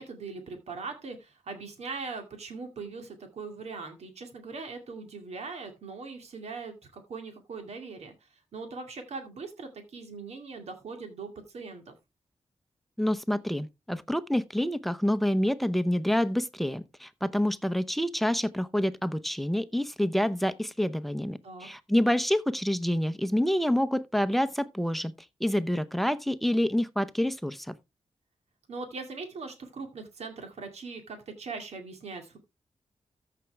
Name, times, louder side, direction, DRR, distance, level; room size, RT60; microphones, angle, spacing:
voice 1, 0.0-11.9 21.4-21.7 28.7-32.4, right 4 dB, 85° right, 2.2 m, -40 dB
voice 2, 13.0-25.1 25.4-27.7, equal, ahead, 0.7 m, -27 dB
14.0 x 5.9 x 3.3 m
wide cardioid pair, 120°, 11 cm